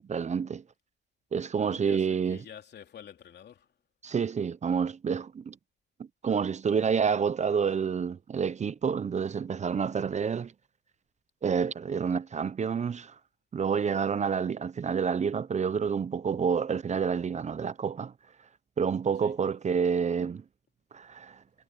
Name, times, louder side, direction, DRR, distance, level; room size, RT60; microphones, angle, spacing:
voice 1, 0.0-0.6 1.3-2.4 4.0-5.6 6.0-10.5 11.4-13.2 13.5-18.1 18.8-20.4 20.9-21.4, right 6 dB, 35° right, 0.7 m, -28 dB
voice 2, 1.6-3.8 19.1-19.3, left 8 dB, 60° left, 3.2 m, -49 dB
cardioid pair, 90°, 20 cm